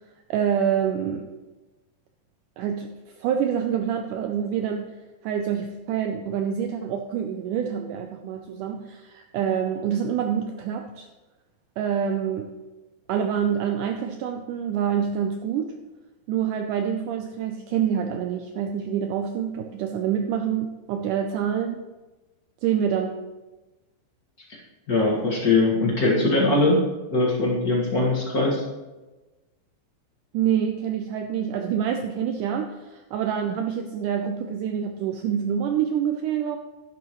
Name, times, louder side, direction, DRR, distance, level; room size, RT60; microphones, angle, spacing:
voice 1, 0.3-1.2 2.6-2.9 3.2-4.9 5.2-11.1 11.8-12.5 13.1-15.7 16.3-21.8 22.6-23.1 30.3-36.6, right 8 dB, 80° right, 5 dB, 1.9 m, -26 dB
voice 2, 24.9-26.8 27.1-28.6, left 2 dB, 40° left, -4 dB, 1.4 m, -21 dB
11.0 x 11.0 x 3.1 m, 1.1 s
omnidirectional pair, 4.2 m